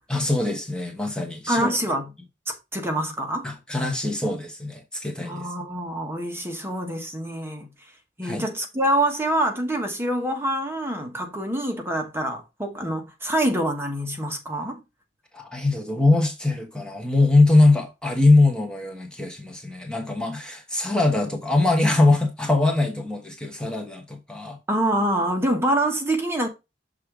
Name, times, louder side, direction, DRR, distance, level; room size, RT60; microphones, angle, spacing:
voice 1, 0.1-1.7 3.4-5.5 8.2-8.4 15.3-24.6, left 2 dB, 5° left, 1.2 m, -22 dB
voice 2, 1.5-2.1 2.5-3.5 5.2-7.7 8.2-14.8 24.7-26.5, right 1 dB, 15° right, 1.3 m, -26 dB
6.6 x 3.7 x 4.9 m
head